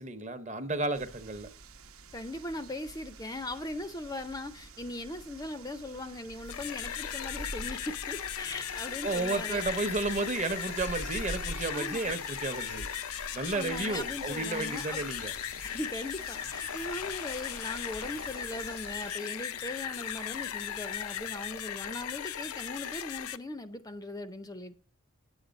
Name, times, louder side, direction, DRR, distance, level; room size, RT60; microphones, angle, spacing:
voice 1, 0.0-1.5 9.0-12.9 13.3-15.3, right 3 dB, 30° right, 0.8 m, -32 dB
sound 1, 0.9-19.1, right 2 dB, 80° right, 0.9 m, -47 dB
voice 2, 2.1-9.8 11.7-12.2 13.5-15.0 15.6-24.8, left 1 dB, 15° left, 0.5 m, -39 dB
sound 2, 6.3-23.4, left 9 dB, 85° left, 0.6 m, -37 dB
9.5 x 8.1 x 5.2 m
head